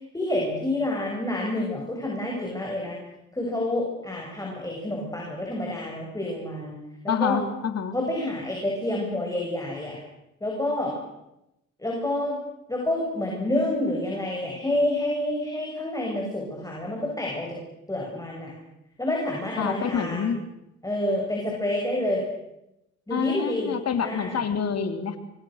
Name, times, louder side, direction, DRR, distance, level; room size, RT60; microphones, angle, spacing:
voice 1, 0.1-3.0 3.3-6.8 7.0-7.4 7.9-10.0 10.4-10.9 11.8-12.4 12.7-17.6 17.9-18.5 19.0-20.3 20.8-22.2 23.1-24.4, left 1 dB, 10° left, -2 dB, 7.8 m, -28 dB
voice 2, 7.1-7.9 19.6-20.4 23.1-25.2, left 7 dB, 55° left, 8 dB, 3.4 m, -27 dB
27.5 x 24.0 x 6.7 m, 0.88 s
cardioid pair, 90°, 30 cm